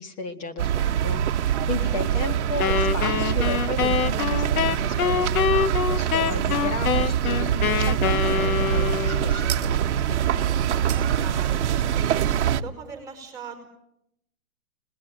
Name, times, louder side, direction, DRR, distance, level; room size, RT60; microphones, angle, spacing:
voice 1, 0.0-10.2, left 3 dB, 25° left, 6 dB, 1.9 m, -34 dB
sound 1, 0.6-12.6, right 9 dB, 50° right, 1.2 m, -24 dB
voice 2, 1.5-2.2 10.3-10.4 10.7-11.6 11.9-13.6, right 5 dB, 10° right, 6 dB, 5.1 m, -40 dB
Wind instrument woodwind instrument, 2.6-9.4, left 8 dB, 75° left, 1.1 m, -25 dB
29.0 x 21.0 x 9.2 m, 0.78 s
hypercardioid pair, 165°, 44 cm